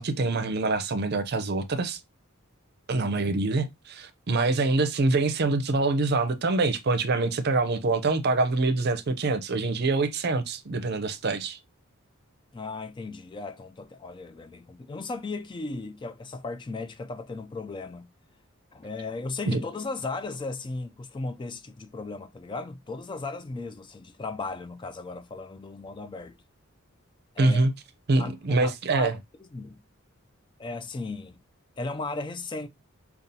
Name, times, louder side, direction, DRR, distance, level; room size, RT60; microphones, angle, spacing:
voice 1, 0.0-2.0 2.9-11.6 19.5-19.6 27.4-27.7 28.1-29.2, right 3 dB, 50° right, 0.5 m, -25 dB
voice 2, 12.5-18.1 18.7-26.4 27.4-27.6 28.2-29.2 29.5-29.8 30.6-31.4 31.8-32.7, left 3 dB, 25° left, 0.3 m, -36 dB
5.1 x 2.4 x 2.7 m
head